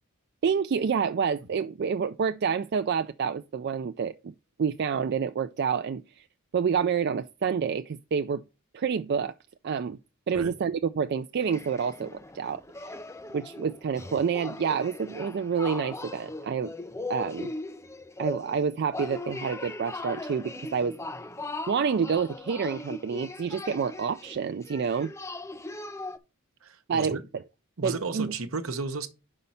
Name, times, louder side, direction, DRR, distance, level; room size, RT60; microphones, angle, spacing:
voice 1, 0.4-4.3 4.6-6.3 6.5-8.4 8.7-9.3 9.6-10.0 10.3-13.0 13.3-16.7 17.1-17.5 18.2-21.0 21.7-25.1 26.9-27.2 27.8-28.3, right 6 dB, 50° right, 0.3 m, -28 dB
sound 1, 11.4-26.2, left 2 dB, 15° left, 0.5 m, -39 dB
voice 2, 26.6-27.2 27.8-29.1, right 3 dB, 75° right, 1.0 m, -33 dB
5.5 x 5.3 x 5.6 m
head